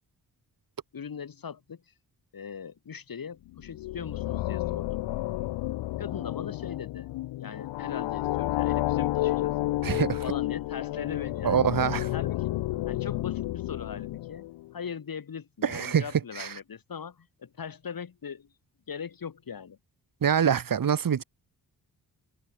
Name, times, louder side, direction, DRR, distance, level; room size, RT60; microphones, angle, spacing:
voice 1, 0.9-1.9 2.3-5.1 6.0-7.1 7.4-9.6 10.2-11.8 12.1-12.5 12.9-14.5 14.7-18.5 18.9-19.8, left 7 dB, 55° left, 3.6 m, -40 dB
sound 1, 3.5-14.7, left 16 dB, 85° left, 0.6 m, -31 dB
voice 2, 9.8-10.2 11.4-12.1 15.6-16.0 16.4-16.5 20.2-21.2, right 8 dB, 50° right, 1.5 m, -25 dB
open air
cardioid pair, 65°, 42 cm